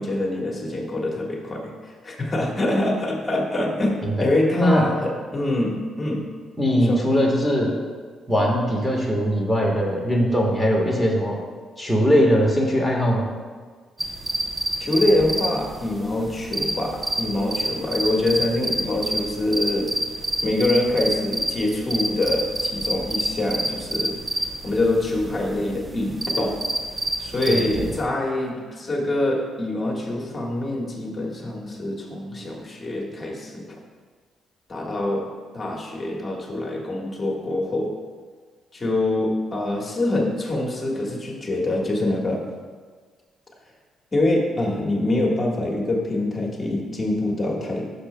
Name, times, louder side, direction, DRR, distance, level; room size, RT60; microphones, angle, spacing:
voice 1, 0.0-6.3 6.7-7.0 14.8-19.9 20.4-26.6 27.2-33.8 34.7-37.9 38.7-42.4 44.1-47.9, left 1 dB, 30° left, -2 dB, 1.4 m, -25 dB
voice 2, 6.6-7.7 8.3-11.4 11.8-13.2 27.5-27.9, equal, 5° right, -1 dB, 1.3 m, -20 dB
sound 1, 14.0-28.0, right 1 dB, 20° right, 0.7 m, -28 dB
11.5 x 6.5 x 2.2 m, 1.5 s
cardioid pair, 90°, 0 cm